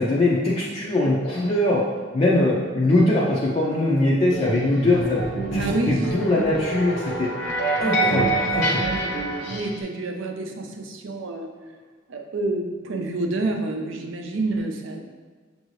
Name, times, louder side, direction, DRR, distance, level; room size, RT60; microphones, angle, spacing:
voice 1, 0.0-1.8 2.1-5.2 5.5-7.3 7.8-8.8, left 1 dB, 30° left, -6 dB, 0.5 m, -21 dB
sound 1, 4.3-9.8, right 2 dB, 60° left, 0.8 m, -26 dB
voice 2, 5.6-6.1 7.8-11.5 12.1-15.0, right 2 dB, 75° right, 3 dB, 0.5 m, -29 dB
6.5 x 2.6 x 3.1 m, 1.4 s
head